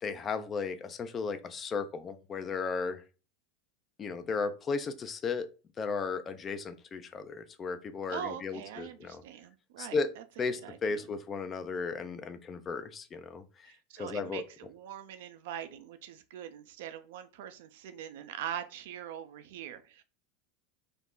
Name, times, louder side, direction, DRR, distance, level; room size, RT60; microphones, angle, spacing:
voice 1, 0.0-3.0 4.0-5.5 5.8-9.2 9.8-10.1 10.4-14.4, left 4 dB, 30° left, 0.4 m, -35 dB
voice 2, 8.1-10.2 10.6-11.1 13.7-20.0, right 9 dB, 75° right, 0.4 m, -43 dB
2.4 x 2.0 x 3.6 m
supercardioid pair, 105°, 0 cm